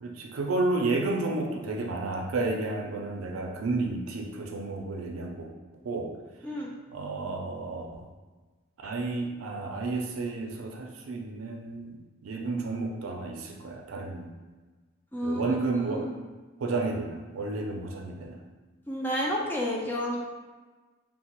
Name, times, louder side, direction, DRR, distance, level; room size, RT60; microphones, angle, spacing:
voice 1, 0.0-5.5 5.8-6.1 6.9-8.1 8.8-12.0 12.2-14.3 15.2-16.0 16.6-18.4, right 3 dB, 90° right, 1 dB, 0.4 m, -31 dB
voice 2, 15.1-15.6 15.9-16.1 18.9-20.2, equal, 10° left, -3 dB, 0.3 m, -30 dB
2.9 x 2.0 x 2.9 m, 1.3 s
head